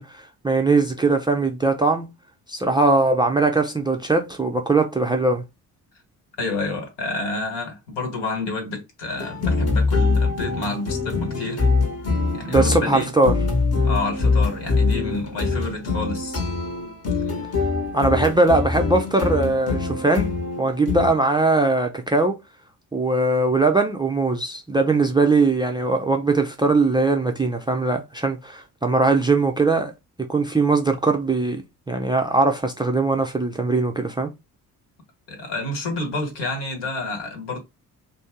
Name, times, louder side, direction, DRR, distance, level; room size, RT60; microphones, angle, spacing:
voice 1, 0.0-2.1 2.5-5.4 12.5-13.4 17.9-22.4 22.9-29.9 30.2-31.6 31.9-34.3, right 3 dB, 10° right, 0.5 m, -20 dB
voice 2, 6.4-11.7 12.3-13.1 13.8-16.4 17.3-17.4 35.3-37.6, left 2 dB, 60° left, 1.5 m, -29 dB
sound 1, 9.2-21.1, left 3 dB, 30° left, 1.2 m, -23 dB
2.5 x 2.1 x 3.7 m
figure-of-eight pair, 45°, 47 cm